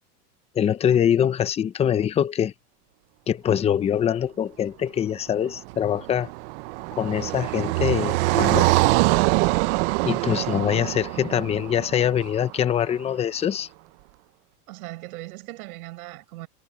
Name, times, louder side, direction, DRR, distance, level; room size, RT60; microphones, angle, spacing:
voice 1, 0.5-2.5 3.3-6.3 7.0-8.7 10.0-13.7, left 9 dB, 15° left, 0.7 m, -23 dB
Car passing by, 5.6-12.8, right 22 dB, 45° right, 0.9 m, -24 dB
voice 2, 14.7-16.5, right 20 dB, 65° right, 7.7 m, -39 dB
supercardioid pair, 150°, 47 cm